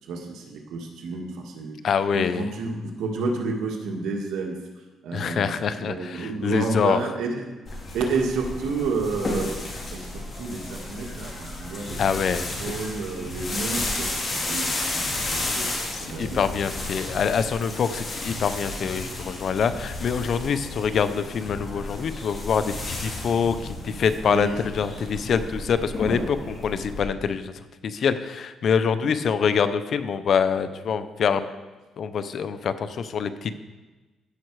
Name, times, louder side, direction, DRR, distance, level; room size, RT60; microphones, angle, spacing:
voice 1, 0.1-1.8 2.1-4.6 5.0-9.6 9.9-12.2 12.6-15.7 16.0-16.4 19.4-19.6 24.3-24.6 29.0-29.1, right 3 dB, 85° right, 1 dB, 1.7 m, -30 dB
voice 2, 1.8-2.5 5.1-7.0 12.0-12.5 15.4-27.5 27.8-31.5 32.0-33.5, left 6 dB, 60° left, 11 dB, 0.7 m, -25 dB
sound 1, 7.7-27.0, left 2 dB, 40° left, 3.3 m, -32 dB
15.0 x 5.8 x 4.7 m, 1.2 s
cardioid pair, 90°, 0 cm